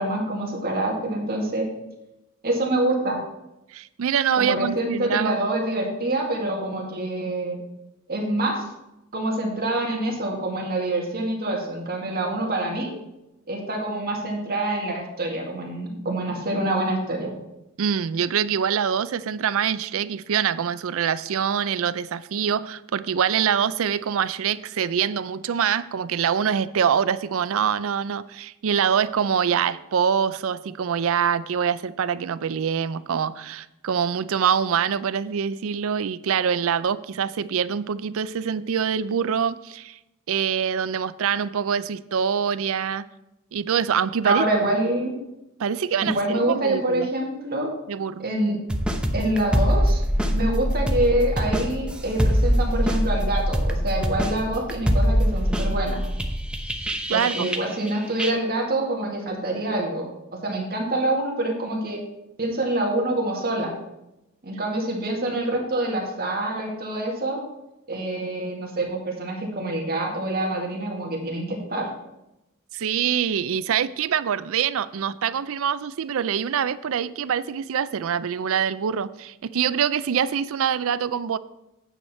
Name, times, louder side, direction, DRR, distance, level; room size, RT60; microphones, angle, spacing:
voice 1, 0.0-1.7 2.4-3.2 4.3-7.6 8.1-8.7 9.1-12.9 13.5-17.3 44.2-45.1 46.0-47.7 48.2-48.6 49.1-50.0 50.3-56.0 57.1-60.1 60.4-62.0 62.4-63.7 64.4-67.4 67.9-71.9, right 1 dB, 45° right, 0 dB, 2.1 m, -26 dB
voice 2, 3.7-5.4 17.8-40.0 40.3-43.0 43.5-44.5 45.6-47.1 47.9-48.2 57.1-57.5 72.7-81.4, right 7 dB, 65° right, 15 dB, 0.4 m, -24 dB
sound 1, 48.7-57.9 58.2-58.3, equal, 5° right, 0.8 m, -23 dB
9.0 x 8.0 x 4.3 m, 0.92 s
head